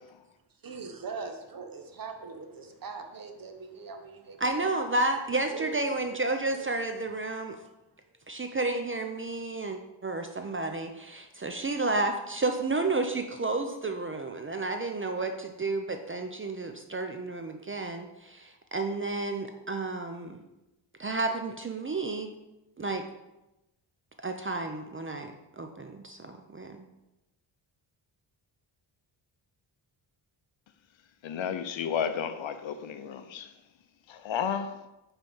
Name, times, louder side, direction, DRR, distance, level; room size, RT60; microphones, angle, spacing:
voice 1, 0.6-4.7 5.5-6.2 6.5-6.7 8.1-8.2, right 5 dB, 45° right, 0.9 m, -41 dB
voice 2, 4.4-7.6 8.3-20.4 21.0-22.3 22.8-23.1 24.2-26.9, right 2 dB, 25° right, 0.5 m, -31 dB
voice 3, 31.2-33.5 34.1-34.8, left 7 dB, 70° left, 0.7 m, -32 dB
5.2 x 4.4 x 5.4 m
wide cardioid pair, 115°, 48 cm